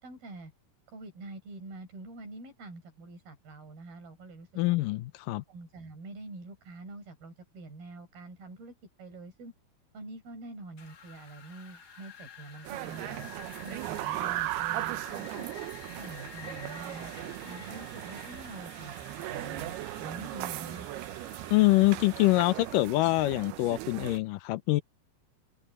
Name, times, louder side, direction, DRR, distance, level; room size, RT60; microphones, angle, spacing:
voice 1, 0.0-0.5 0.9-4.8 5.5-9.5 9.9-13.3 13.6-15.5 16.0-20.9, right 2 dB, 70° right, 7.2 m, -46 dB
voice 2, 4.6-5.4 21.5-24.8, left 19 dB, 80° left, 2.0 m, -25 dB
Wind, 10.8-22.7, left 6 dB, 60° left, 1.0 m, -50 dB
sound 1, 12.6-24.2, right 16 dB, 85° right, 2.9 m, -37 dB
omnidirectional pair, 4.5 m